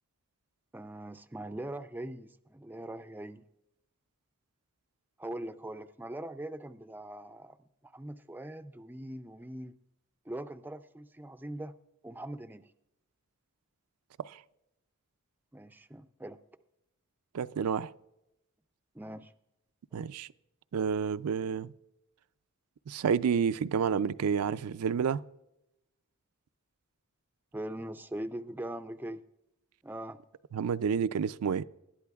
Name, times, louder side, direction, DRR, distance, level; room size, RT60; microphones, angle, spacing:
voice 1, 0.7-3.5 5.2-7.6 7.8-9.8 10.3-11.7 12.0-12.7 15.5-16.4 18.9-19.3 19.9-20.0 27.5-29.2 29.8-30.2, right 1 dB, 10° right, 0.3 m, -41 dB
voice 2, 17.3-17.9 19.9-20.3 20.7-21.7 22.9-25.2 30.5-31.6, right 6 dB, 90° right, 0.4 m, -29 dB
20.0 x 11.0 x 2.3 m
head